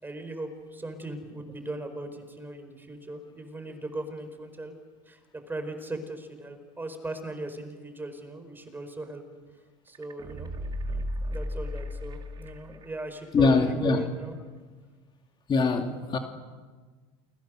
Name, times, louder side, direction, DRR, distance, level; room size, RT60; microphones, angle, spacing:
voice 1, 0.0-4.7 5.1-9.2 9.9-10.5 10.9-14.4, right 2 dB, 15° right, 8 dB, 4.7 m, -38 dB
sound 1, 9.9-12.9 13.2-13.3, equal, 30° right, 2.9 m, -34 dB
voice 2, 13.3-14.0 15.5-16.2, left 4 dB, 30° left, 3 dB, 2.7 m, -23 dB
29.0 x 22.5 x 6.5 m, 1.4 s
supercardioid pair, 95°, 15 cm